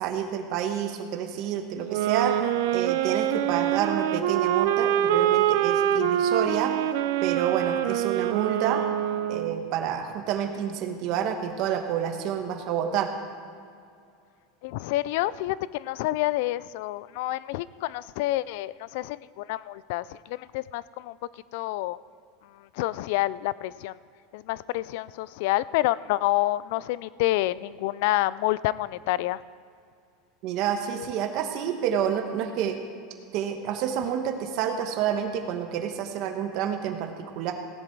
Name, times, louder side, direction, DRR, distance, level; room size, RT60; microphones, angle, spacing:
voice 1, 0.0-2.3 2.7-6.8 7.2-8.8 9.3-13.1 30.4-32.8 33.3-37.5, right 9 dB, 45° right, 5 dB, 1.2 m, -29 dB
sound 1, 1.9-9.7, right 11 dB, 65° right, 0.5 m, -25 dB
voice 2, 14.6-21.2 21.5-22.0 22.7-23.9 24.3-29.4, left 17 dB, 60° left, 19 dB, 0.3 m, -28 dB
16.5 x 10.0 x 4.7 m, 2.4 s
supercardioid pair, 165°, 0 cm